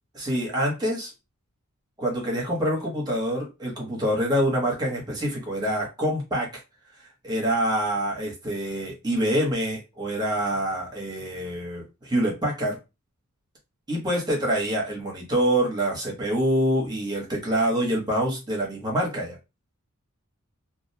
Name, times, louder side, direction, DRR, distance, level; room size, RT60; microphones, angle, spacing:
voice 1, 0.1-1.1 2.0-6.5 7.2-12.8 13.9-19.4, right 1 dB, 20° right, -2 dB, 0.9 m, -26 dB
2.5 x 2.1 x 2.7 m, 0.26 s
head